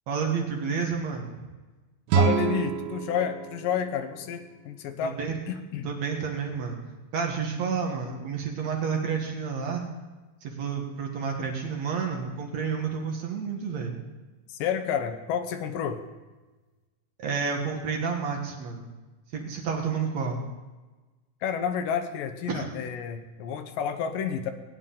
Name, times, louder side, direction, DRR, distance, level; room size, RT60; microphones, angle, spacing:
voice 1, 0.1-1.3 5.0-5.3 5.8-6.8 7.1-9.8 10.4-13.9 17.2-18.9 19.3-20.4 22.5-22.7, right 6 dB, 60° right, 1 dB, 2.3 m, -30 dB
sound 1, 2.1-5.1, right 6 dB, 90° right, 2.6 m, -28 dB
voice 2, 2.2-5.2 5.5-5.9 14.5-16.0 21.4-24.5, left 7 dB, 75° left, 7 dB, 2.5 m, -30 dB
19.0 x 9.1 x 3.8 m, 1.2 s
omnidirectional pair, 4.1 m